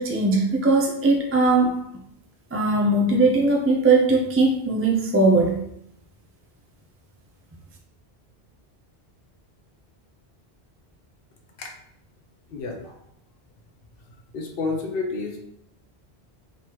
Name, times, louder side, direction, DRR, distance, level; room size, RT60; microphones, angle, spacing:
voice 1, 0.0-1.8 2.5-5.6, right 2 dB, 20° right, 0 dB, 0.4 m, -20 dB
voice 2, 12.5-12.9 14.3-15.4, left 3 dB, 65° left, 2 dB, 0.9 m, -30 dB
3.8 x 3.1 x 2.9 m, 0.74 s
omnidirectional pair, 1.1 m